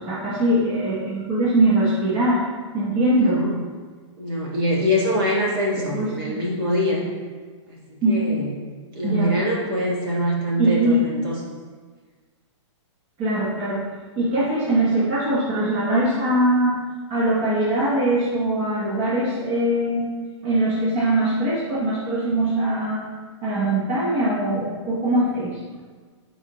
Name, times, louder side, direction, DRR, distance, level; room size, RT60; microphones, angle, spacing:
voice 1, 0.0-2.4 2.7-3.4 5.9-6.4 8.0-8.2 9.0-9.3 10.6-11.0 13.2-13.8 14.2-16.7 17.1-20.1 20.4-23.0 23.4-25.6, right 1 dB, 25° right, -9 dB, 1.1 m, -21 dB
voice 2, 3.1-3.6 4.2-7.0 7.7-8.5 8.9-11.4, equal, 45° right, -4 dB, 1.7 m, -24 dB
8.9 x 4.1 x 3.0 m, 1.5 s
hypercardioid pair, 175°, 16 cm